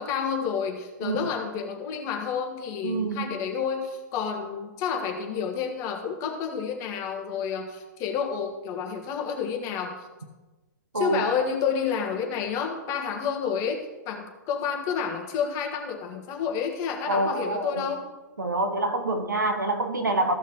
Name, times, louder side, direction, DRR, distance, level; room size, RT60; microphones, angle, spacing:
voice 1, 0.0-9.9 11.0-18.0, left 6 dB, 30° left, 2 dB, 1.6 m, -30 dB
voice 2, 2.8-3.3 10.9-11.3 17.1-17.9 18.4-20.3, right 2 dB, 80° right, 5 dB, 1.2 m, -26 dB
15.5 x 5.7 x 3.0 m, 1.2 s
figure-of-eight pair, 115°, 10 cm